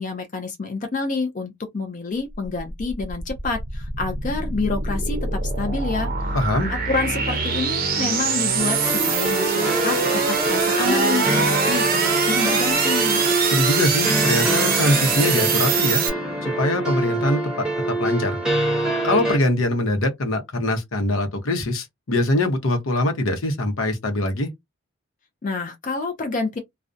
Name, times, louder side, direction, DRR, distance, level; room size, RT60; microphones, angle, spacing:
voice 1, 0.0-6.4 6.7-13.2 25.4-26.6, left 4 dB, 40° left, 0.4 m, -28 dB
sound 1, 2.3-16.1, right 5 dB, 45° right, 0.5 m, -23 dB
voice 2, 6.3-6.7 13.4-16.0 16.4-17.7 18.0-18.4 18.7-24.5, left 1 dB, 80° left, 0.7 m, -23 dB
sound 2, 8.6-19.4, right 1 dB, 5° right, 0.8 m, -25 dB
2.4 x 2.1 x 2.5 m
head